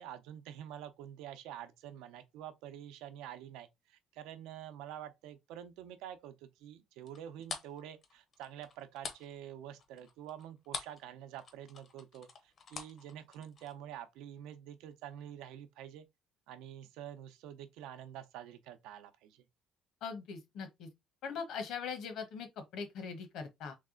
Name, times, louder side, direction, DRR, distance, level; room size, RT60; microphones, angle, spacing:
voice 1, 0.0-16.1 16.5-19.4, right 10 dB, 80° right, 0.7 m, -47 dB
sound 1, 7.1-11.1 11.3-13.7, left 5 dB, 30° left, 0.7 m, -45 dB
voice 2, 20.0-20.9 21.2-23.8, left 6 dB, 55° left, 1.1 m, -41 dB
3.4 x 3.3 x 3.7 m
cardioid pair, 180°, 0 cm